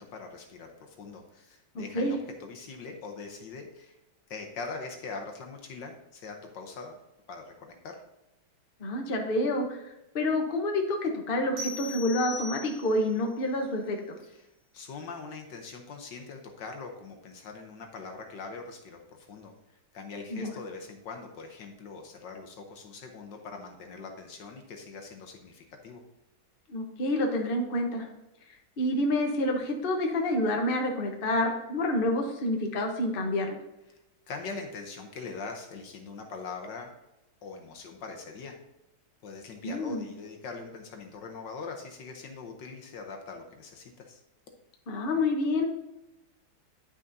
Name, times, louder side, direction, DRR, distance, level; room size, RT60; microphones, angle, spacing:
voice 1, 0.0-4.0 4.3-7.0 7.3-7.9 14.2-14.5 14.7-26.0 33.9-34.0 34.3-36.9 37.4-38.6 39.2-44.2, left 4 dB, 65° left, 3 dB, 1.4 m, -42 dB
voice 2, 8.8-9.8 10.1-14.2 20.3-20.5 26.7-28.1 28.8-33.6 39.6-40.0 44.9-45.7, left 1 dB, 40° left, 2 dB, 0.8 m, -28 dB
sound 1, 11.6-13.1, left 2 dB, 80° right, 3.1 m, -39 dB
9.9 x 6.1 x 2.7 m, 0.93 s
omnidirectional pair, 2.4 m